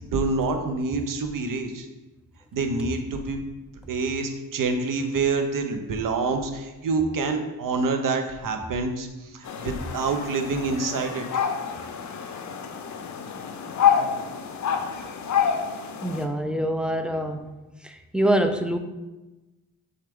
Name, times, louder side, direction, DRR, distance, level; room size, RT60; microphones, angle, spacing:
voice 1, 0.1-1.9 2.5-3.4 3.9-11.2, right 4 dB, 60° right, 6 dB, 0.7 m, -27 dB
sound 1, 9.4-16.2, left 7 dB, 50° left, 0.5 m, -27 dB
voice 2, 16.0-17.5 17.8-18.8, right 1 dB, 5° right, 6 dB, 0.3 m, -25 dB
6.2 x 2.4 x 3.5 m, 1.1 s
cardioid pair, 60°, 37 cm